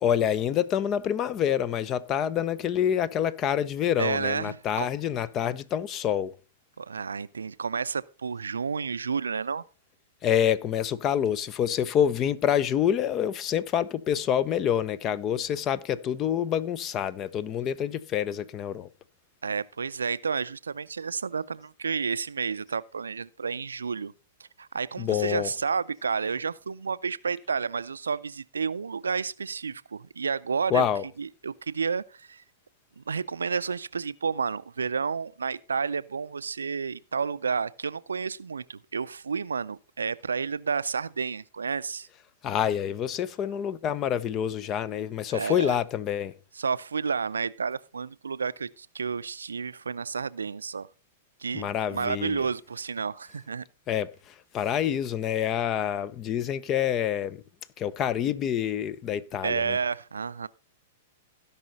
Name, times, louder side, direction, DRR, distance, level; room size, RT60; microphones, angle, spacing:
voice 1, 0.0-6.3 10.2-18.9 25.0-25.6 30.7-31.0 42.4-46.3 51.5-52.5 53.9-57.4 57.8-59.8, left 9 dB, 35° left, 0.6 m, -27 dB
voice 2, 4.0-4.9 6.8-9.6 19.4-24.1 24.6-30.9 31.2-32.4 33.0-42.1 45.3-45.8 46.6-50.9 51.4-53.6 59.4-60.5, right 5 dB, 80° right, 0.4 m, -31 dB
16.0 x 5.5 x 4.0 m
hypercardioid pair, 105°, 0 cm